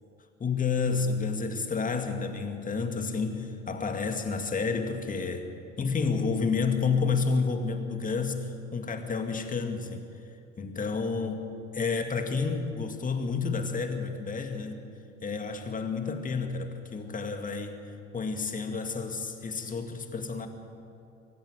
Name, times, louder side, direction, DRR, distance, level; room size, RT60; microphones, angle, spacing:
voice 1, 0.4-5.5 5.8-10.0 10.6-14.8 15.2-17.8 18.1-20.5, left 4 dB, 20° left, 6 dB, 2.1 m, -30 dB
24.0 x 14.5 x 7.8 m, 2.7 s
figure-of-eight pair, 75°, 37 cm